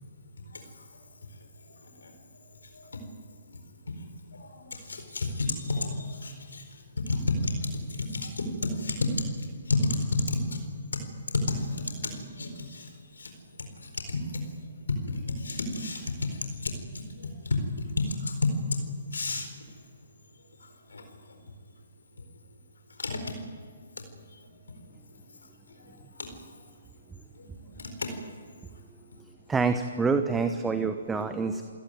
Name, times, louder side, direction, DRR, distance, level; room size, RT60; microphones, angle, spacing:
voice 1, 4.4-6.6 7.1-7.5 7.9-8.5 8.7-9.1 9.4-10.4 11.5-12.9 13.2-13.3 13.8-14.4 15.1-16.3 16.6-16.7 17.2-18.5 19.1-19.5 20.6-21.0 21.3-21.4 23.0-23.2 24.0-24.1 24.4-24.5 26.2-26.3 27.4-28.1 31.2-31.3, left 3 dB, 75° left, 6 dB, 4.4 m, -31 dB
voice 2, 29.5-31.6, right 4 dB, 10° right, 9 dB, 1.1 m, -27 dB
28.0 x 17.0 x 9.5 m, 2.1 s
figure-of-eight pair, 130°, 0 cm